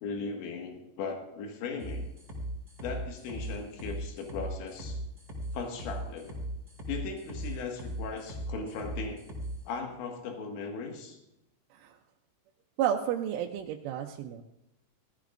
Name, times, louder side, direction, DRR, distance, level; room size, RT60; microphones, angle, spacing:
voice 1, 0.0-2.1 2.8-5.0 5.5-6.4 6.9-9.3 9.7-11.2, left 4 dB, 75° left, 2 dB, 4.0 m, -38 dB
sound 1, 1.8-9.6, equal, 10° right, 4.4 m, -38 dB
voice 2, 12.8-14.4, right 10 dB, 85° right, 1 dB, 3.2 m, -31 dB
19.0 x 15.0 x 2.6 m, 0.85 s
omnidirectional pair, 5.4 m